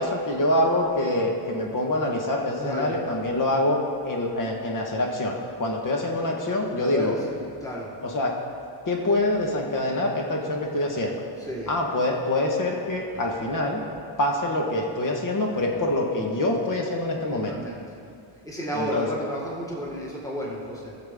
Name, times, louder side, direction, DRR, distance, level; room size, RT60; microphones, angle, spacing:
voice 1, 0.0-7.1 8.1-8.3 8.9-11.2 11.7-13.8 14.2-17.5 18.7-19.1, left 1 dB, 40° left, 0 dB, 1.3 m, -25 dB
voice 2, 2.6-3.0 6.8-7.9 11.4-11.8 13.1-13.3 15.7-15.9 17.3-17.9 18.4-20.9, equal, 5° left, -4 dB, 1.7 m, -33 dB
17.0 x 7.0 x 3.6 m, 2.5 s
cardioid pair, 155°, 47 cm